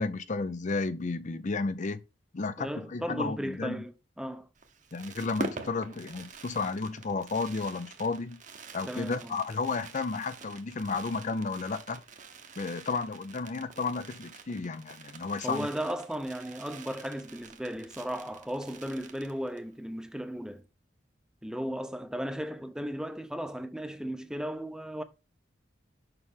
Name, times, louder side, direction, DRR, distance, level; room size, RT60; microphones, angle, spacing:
voice 1, 0.0-2.0 2.3-3.8 4.9-8.4 8.7-12.0 12.6-15.7, left 4 dB, 40° left, 0.5 m, -32 dB
voice 2, 2.6-4.5 8.9-9.4 15.4-20.6 21.4-25.0, equal, 5° right, 0.7 m, -35 dB
Fireworks, 4.6-19.7 20.0-20.1 20.3-20.6, right 3 dB, 40° right, 1.1 m, -45 dB
6.7 x 5.9 x 3.6 m
head